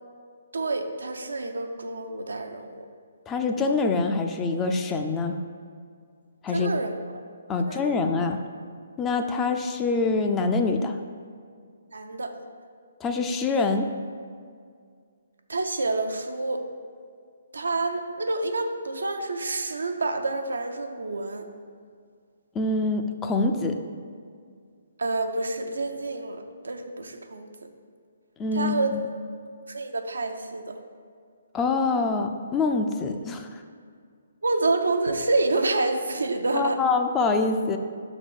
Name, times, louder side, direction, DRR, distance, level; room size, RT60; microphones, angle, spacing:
voice 1, 0.5-2.9 6.5-7.0 7.7-8.0 11.9-12.3 15.5-16.7 17.5-21.5 25.0-27.5 28.5-28.9 29.7-30.8 34.4-36.8, right 3 dB, 80° right, 5 dB, 0.6 m, -28 dB
voice 2, 3.3-5.4 6.4-6.8 7.5-8.4 9.0-11.0 13.0-13.9 22.5-23.8 28.4-29.1 31.5-33.6 36.5-37.8, left 3 dB, 15° left, 5 dB, 0.4 m, -25 dB
5.7 x 3.9 x 6.1 m, 2.1 s
hypercardioid pair, 145°, 0 cm